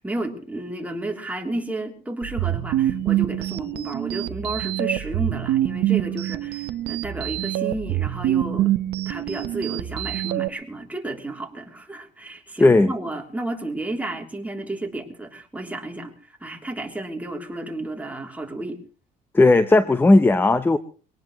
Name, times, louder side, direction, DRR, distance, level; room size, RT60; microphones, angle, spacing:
voice 1, 0.0-8.7 9.1-16.1 16.4-18.8, right 2 dB, 10° right, 3.2 m, -32 dB
sound 1, 2.2-10.5, right 14 dB, 80° right, 0.9 m, -25 dB
voice 2, 12.6-12.9 19.3-20.8, left 2 dB, 10° left, 0.8 m, -15 dB
23.0 x 18.0 x 3.1 m
cardioid pair, 110°, 17 cm